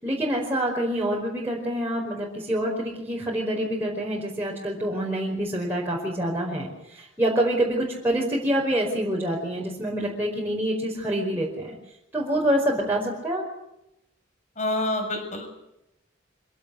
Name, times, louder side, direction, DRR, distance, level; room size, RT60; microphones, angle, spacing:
voice 1, 0.0-11.8 12.1-13.5, right 1 dB, 10° right, -4 dB, 5.0 m, -26 dB
voice 2, 14.6-15.5, left 1 dB, 40° left, 5 dB, 7.3 m, -27 dB
26.0 x 17.5 x 8.5 m, 0.87 s
head